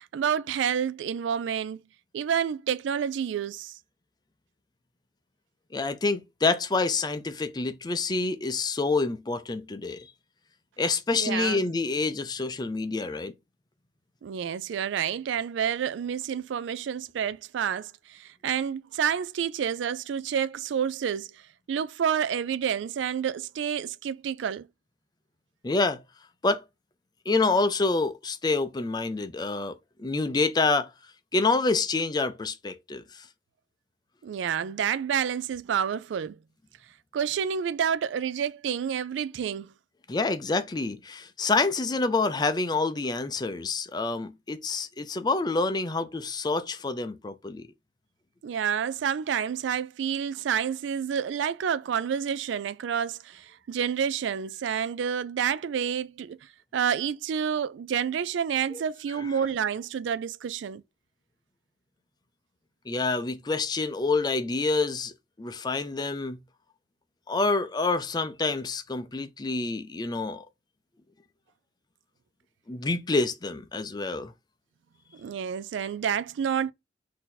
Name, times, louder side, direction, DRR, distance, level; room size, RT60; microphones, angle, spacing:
voice 1, 0.0-1.8 2.1-3.8 11.1-11.6 14.2-21.3 21.7-24.7 34.2-36.4 37.1-39.7 48.4-56.4 56.7-60.8 75.2-76.7, right 8 dB, 75° right, 0.3 m, -29 dB
voice 2, 5.7-10.1 10.8-13.3 25.6-26.0 26.4-26.6 27.3-30.9 31.3-33.2 40.1-47.7 58.7-58.8 59.2-59.3 62.9-65.1 65.4-66.4 67.3-70.4 72.7-74.3, left 3 dB, 20° left, 0.4 m, -27 dB
4.2 x 2.7 x 4.0 m
head